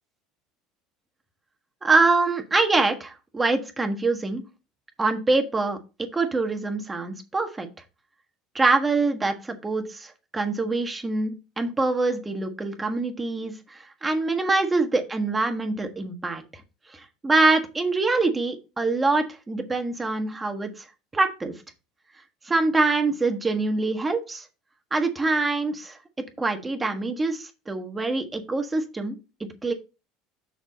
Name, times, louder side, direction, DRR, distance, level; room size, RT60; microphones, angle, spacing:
voice 1, 1.8-4.4 5.0-5.8 6.1-7.7 8.5-16.4 17.2-20.8 21.1-21.5 22.5-24.4 24.9-26.0 26.4-29.2 29.6-29.7, right 3 dB, 15° right, 5 dB, 1.4 m, -24 dB
6.2 x 6.1 x 4.0 m, 0.29 s
supercardioid pair, 105°, 0 cm